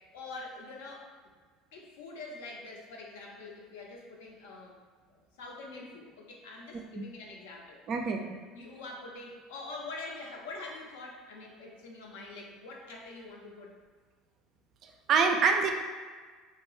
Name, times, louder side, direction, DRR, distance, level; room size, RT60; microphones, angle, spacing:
voice 1, 0.1-1.1 1.7-4.8 5.1-7.8 8.2-13.7, left 3 dB, 70° left, -1 dB, 0.5 m, -45 dB
voice 2, 7.9-8.4 15.1-15.7, right 5 dB, 50° right, 4 dB, 0.3 m, -25 dB
2.7 x 2.2 x 3.0 m, 1.5 s
hypercardioid pair, 70°, 0 cm